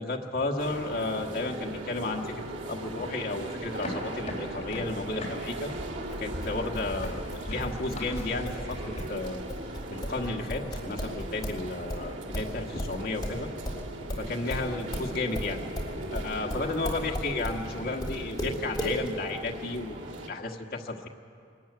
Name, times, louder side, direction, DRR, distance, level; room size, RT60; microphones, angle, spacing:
voice 1, 0.0-5.7 6.2-9.4 9.9-13.5 14.2-15.6 16.1-20.0 20.3-21.1, left 2 dB, 50° left, 2 dB, 1.5 m, -33 dB
sound 1, 0.6-20.3, right 1 dB, 70° right, 2.2 m, -39 dB
sound 2, 3.6-9.0, left 1 dB, 35° left, 3.8 m, -39 dB
sound 3, 6.1-11.6 11.9-17.6 18.0-19.0, equal, 20° left, 3.7 m, -35 dB
22.5 x 13.5 x 9.4 m, 2.3 s
head